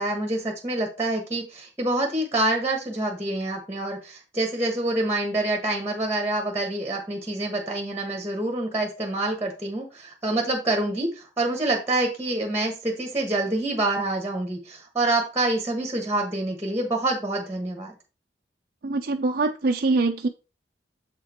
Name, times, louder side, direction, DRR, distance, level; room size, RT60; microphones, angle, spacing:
voice 1, 0.0-17.9, right 2 dB, 15° right, 3 dB, 1.4 m, -26 dB
voice 2, 18.8-20.3, right 3 dB, 55° right, 4 dB, 0.5 m, -23 dB
7.3 x 5.0 x 4.3 m, 0.31 s
head